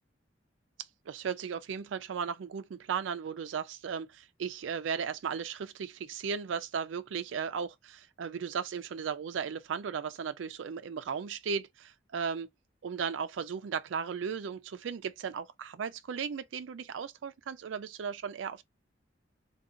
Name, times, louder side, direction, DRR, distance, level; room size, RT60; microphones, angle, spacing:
voice 1, 1.1-12.5 12.8-18.6, right 6 dB, 90° right, 0.4 m, -36 dB
3.7 x 2.3 x 2.6 m
head